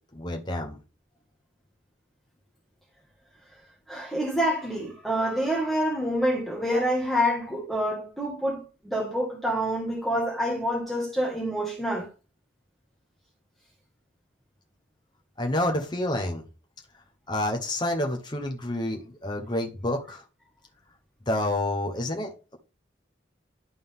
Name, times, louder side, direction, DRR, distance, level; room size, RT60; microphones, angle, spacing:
voice 1, 0.1-0.8 15.4-16.4 17.3-20.2 21.3-22.6, left 1 dB, 25° left, 1.0 m, -29 dB
voice 2, 3.9-12.1, equal, ahead, 1.5 m, -27 dB
11.5 x 3.8 x 3.6 m
head